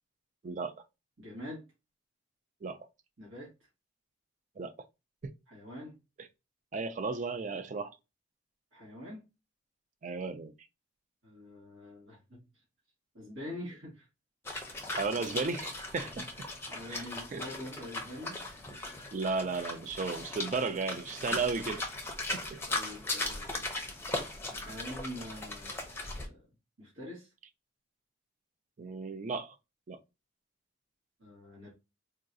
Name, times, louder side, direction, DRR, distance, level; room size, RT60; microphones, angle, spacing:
voice 1, 0.4-0.8 2.6-2.9 4.6-4.7 5.2-5.3 6.7-8.0 10.0-10.5 14.9-16.2 16.9-17.0 17.3-17.4 19.1-21.9 22.5-22.6 28.8-29.6 29.9-30.0, right 4 dB, 40° right, 0.3 m, -34 dB
voice 2, 1.2-1.6 3.2-3.5 5.5-6.0 8.7-9.2 11.2-12.4 13.1-14.1 16.1-18.5 22.7-23.6 24.5-25.7 26.1-26.5 26.8-27.3 31.2-31.7, left 1 dB, 80° right, 1.4 m, -45 dB
sound 1, 14.4-26.3, left 2 dB, 10° left, 0.5 m, -38 dB
3.7 x 2.3 x 2.5 m
head